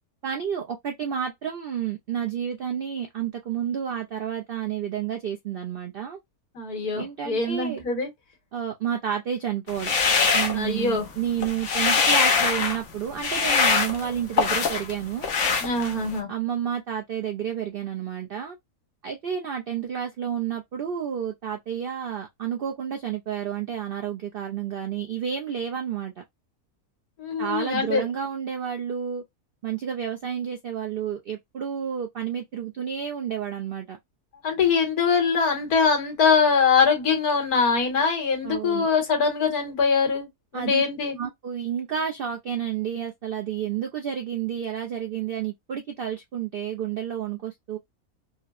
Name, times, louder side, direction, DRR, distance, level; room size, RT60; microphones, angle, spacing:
voice 1, 0.2-6.2 6.9-7.8 8.5-9.9 10.3-15.3 16.3-18.6 19.0-26.2 27.4-29.2 29.6-34.0 38.4-38.9 40.5-40.8 41.2-47.8, right 9 dB, 85° right, 0.5 m, -30 dB
voice 2, 6.5-8.1 10.5-11.1 15.6-16.3 27.2-28.1 34.4-40.3 40.5-41.2, left 5 dB, 80° left, 1.7 m, -23 dB
sound 1, 9.7-11.1 11.4-12.8 13.2-14.9 15.2-16.2, left 5 dB, 60° left, 1.0 m, -23 dB
4.2 x 2.0 x 2.4 m
omnidirectional pair, 1.6 m